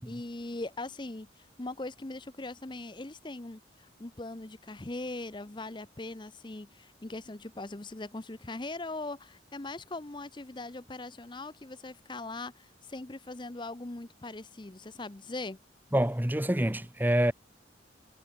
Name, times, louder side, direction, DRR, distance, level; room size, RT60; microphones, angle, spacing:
voice 1, 0.0-15.6, left 2 dB, 25° left, 0.7 m, -40 dB
voice 2, 15.9-17.3, right 1 dB, 10° right, 1.0 m, -26 dB
head